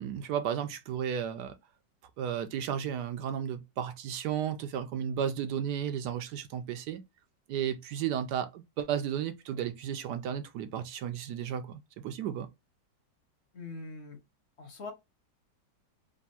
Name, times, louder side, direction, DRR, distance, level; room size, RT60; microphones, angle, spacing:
voice 1, 0.0-1.5 2.2-7.0 7.5-12.5, right 9 dB, 75° right, 1.1 m, -33 dB
voice 2, 13.5-14.2 14.6-14.9, left 3 dB, 45° left, 1.1 m, -42 dB
3.5 x 2.7 x 4.1 m
omnidirectional pair, 1.9 m